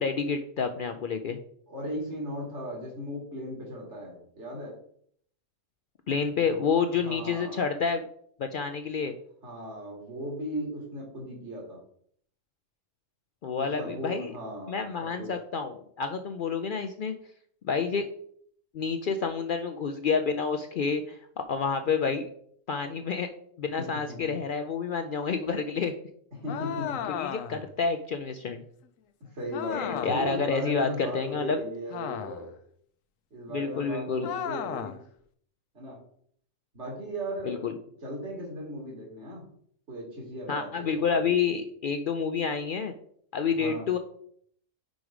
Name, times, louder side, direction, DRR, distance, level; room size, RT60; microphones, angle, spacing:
voice 1, 0.0-1.4 6.1-8.0 8.4-9.1 13.4-14.3 14.7-17.1 17.6-18.1 18.7-21.2 21.5-22.3 22.7-23.3 23.6-25.9 27.1-28.6 29.7-31.6 33.5-34.3 37.4-37.7 40.5-42.9 43.3-44.0, left 5 dB, 65° left, 7 dB, 0.5 m, -29 dB
voice 2, 1.7-4.7 6.5-6.6 6.9-7.6 9.4-11.8 13.6-14.8 15.2-15.3 23.8-24.3 26.4-27.0 29.3-32.5 33.3-35.0 35.7-36.0 36.7-37.6 38.0-39.5 39.9-41.6 43.6-43.9, equal, 60° right, -3 dB, 2.5 m, -37 dB
sound 1, 26.5-27.7 29.5-30.3 31.9-32.6 34.2-35.0, left 9 dB, 85° left, 1.0 m, -34 dB
5.2 x 4.7 x 4.9 m, 0.63 s
omnidirectional pair, 1.3 m